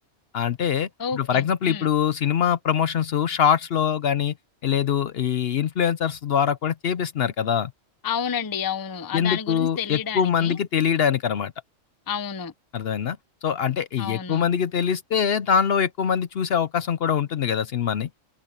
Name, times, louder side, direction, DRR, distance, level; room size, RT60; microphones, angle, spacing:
voice 1, 0.3-4.3 4.6-7.7 9.1-11.5 12.7-13.2 13.4-18.1, left 8 dB, 60° left, 0.8 m, -23 dB
voice 2, 1.0-1.9 8.0-10.6 12.1-12.5 14.0-14.5, left 7 dB, 25° left, 0.5 m, -30 dB
omnidirectional pair, 1.3 m